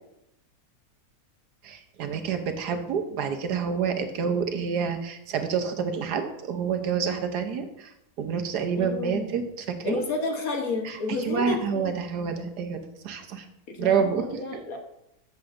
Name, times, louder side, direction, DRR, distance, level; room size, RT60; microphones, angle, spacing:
voice 1, 1.6-10.0 10.8-13.5 13.8-14.6, right 6 dB, 75° right, 6 dB, 1.4 m, -28 dB
voice 2, 8.8-9.3 9.8-12.0 13.7-14.8, left 3 dB, 60° left, 3 dB, 1.5 m, -31 dB
13.5 x 7.5 x 2.5 m, 0.83 s
omnidirectional pair, 1.8 m